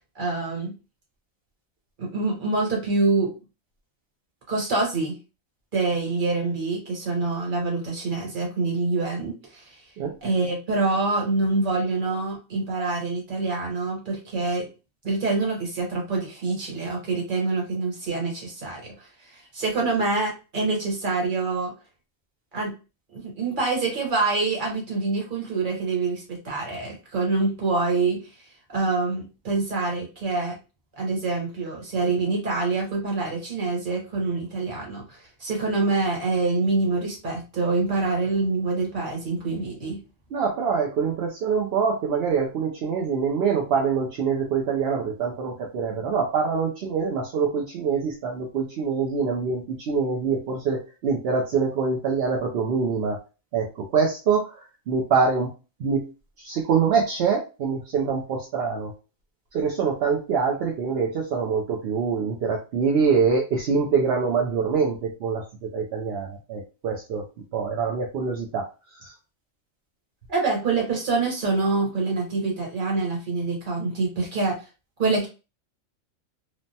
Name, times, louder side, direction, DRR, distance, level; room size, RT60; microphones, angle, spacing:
voice 1, 0.1-0.7 2.0-3.3 4.5-5.2 5.7-9.6 10.2-14.7 15.0-21.7 22.5-22.7 23.1-28.2 28.7-30.6 31.0-40.0 70.3-74.6 75.0-75.3, right 3 dB, 40° right, -1 dB, 1.2 m, -26 dB
voice 2, 40.3-53.2 53.5-55.5 55.8-56.1 56.4-58.9 59.5-67.2 67.5-68.6 69.0-69.1, right 5 dB, 65° right, -1 dB, 0.7 m, -25 dB
3.2 x 2.1 x 2.7 m, 0.31 s
omnidirectional pair, 1.4 m